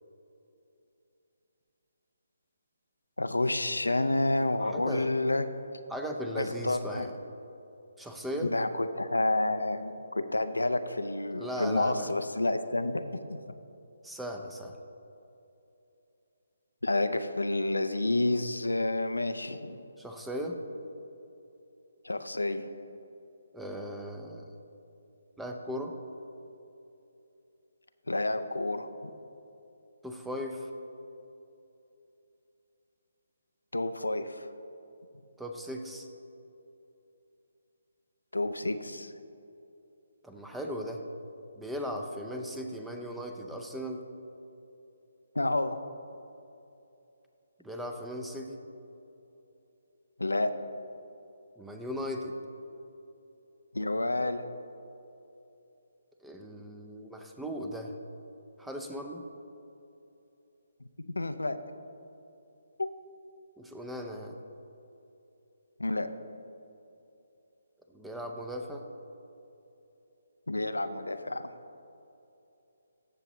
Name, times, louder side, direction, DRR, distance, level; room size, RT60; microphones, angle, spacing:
voice 1, 3.2-5.4 6.4-7.1 8.4-13.5 16.8-19.8 22.0-22.7 28.1-28.9 33.7-34.5 38.3-39.1 45.3-45.8 50.2-50.5 53.7-54.5 61.0-61.6 62.8-62.9 65.8-66.1 70.5-71.5, left 2 dB, 85° left, 9 dB, 0.5 m, -29 dB
voice 2, 4.6-5.1 5.9-7.1 8.0-8.5 11.4-12.1 14.0-14.8 20.0-20.6 23.5-24.5 25.4-25.9 30.0-30.7 35.4-36.1 40.2-41.0 41.6-44.0 47.6-48.6 51.6-52.3 56.2-57.9 58.6-59.2 63.6-64.4 67.9-68.9, equal, 5° right, 3 dB, 0.6 m, -37 dB
14.5 x 6.7 x 3.1 m, 2.9 s
figure-of-eight pair, 145°, 0 cm